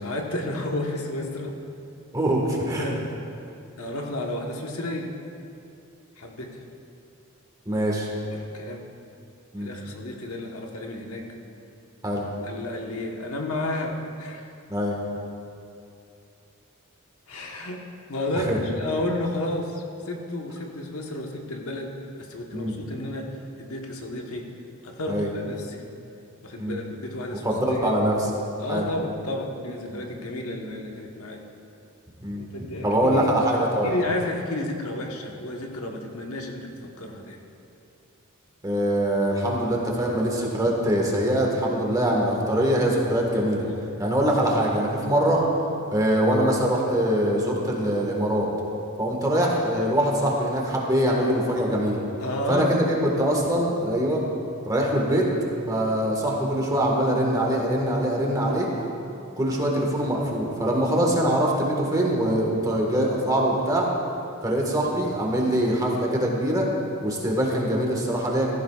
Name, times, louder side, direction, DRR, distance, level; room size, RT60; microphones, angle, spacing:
voice 1, 0.0-1.5 2.8-3.1 3.8-5.1 6.2-6.6 8.3-8.9 9.6-11.3 12.4-14.5 17.3-17.8 18.1-24.5 24.8-25.8 26.4-28.0 28.6-31.4 32.3-33.3 33.8-37.4 52.2-52.8, left 1 dB, 80° left, 1 dB, 1.3 m, -32 dB
voice 2, 2.1-2.9 7.6-8.1 9.5-9.7 12.0-12.2 14.7-15.0 18.3-18.6 22.5-22.8 25.1-25.3 26.6-26.8 27.4-28.3 28.7-28.9 29.9-30.0 32.2-32.4 32.8-33.9 38.6-43.6 44.0-45.4 45.9-48.5 49.0-52.0 52.5-54.2 54.7-55.3 55.7-58.7 59.4-63.9 64.4-66.7 67.0-68.5, right 1 dB, 15° right, -2 dB, 1.6 m, -23 dB
16.0 x 14.5 x 2.4 m, 2.6 s
head